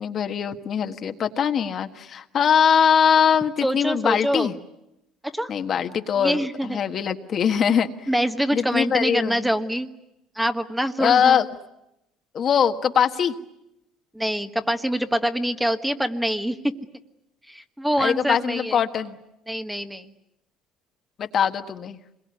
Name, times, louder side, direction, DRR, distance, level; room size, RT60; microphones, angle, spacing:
voice 1, 0.0-4.5 5.5-7.9 8.5-9.5 11.0-11.4 12.3-13.3 18.0-19.2 21.2-22.0, left 7 dB, 45° left, 7 dB, 1.5 m, -22 dB
voice 2, 3.6-4.5 5.2-5.5 6.2-6.8 8.1-9.9 10.4-11.4 14.1-16.7 17.5-18.8 19.5-20.1, equal, 5° right, 8 dB, 1.4 m, -25 dB
26.5 x 22.0 x 9.8 m, 0.87 s
cardioid pair, 110°, 0 cm